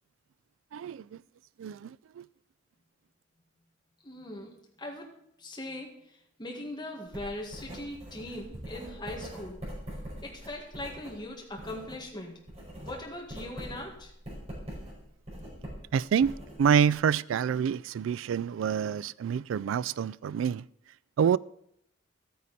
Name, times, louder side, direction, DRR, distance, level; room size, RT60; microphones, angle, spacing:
voice 1, 0.7-1.2 1.6-2.2 15.9-20.6 21.2-21.4, right 7 dB, 80° right, 0.3 m, -27 dB
voice 2, 4.0-4.5 4.8-5.1 5.4-5.9 6.4-9.6 10.2-12.4 12.8-14.1, left 1 dB, 25° left, 1.9 m, -40 dB
Writing, 7.1-12.0 12.3-17.0, equal, 35° right, 5.4 m, -43 dB
13.0 x 9.4 x 4.2 m
head